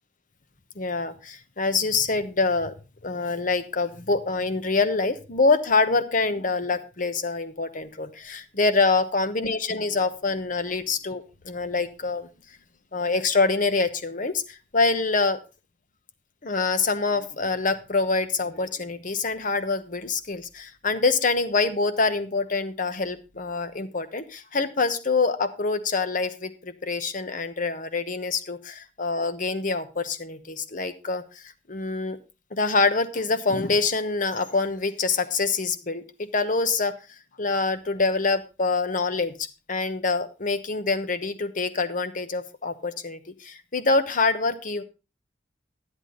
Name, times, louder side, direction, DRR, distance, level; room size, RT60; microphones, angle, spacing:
voice 1, 0.8-2.7 3.0-12.3 12.9-15.4 16.4-32.2 32.5-36.0 36.3-36.9 37.4-44.8, left 3 dB, 50° left, 11 dB, 1.1 m, -25 dB
11.0 x 10.5 x 3.8 m, 0.29 s
head